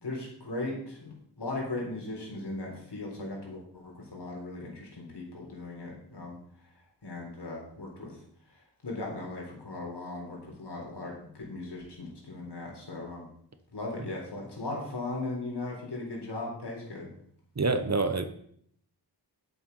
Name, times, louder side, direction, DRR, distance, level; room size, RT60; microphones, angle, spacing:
voice 1, 0.0-6.4 7.0-8.2 8.5-13.2 13.7-17.1, left 2 dB, 75° left, -1 dB, 4.1 m, -38 dB
voice 2, 17.6-18.3, right 3 dB, 40° right, 9 dB, 1.1 m, -26 dB
10.5 x 7.9 x 5.5 m, 0.66 s
wide cardioid pair, 85°, 40 cm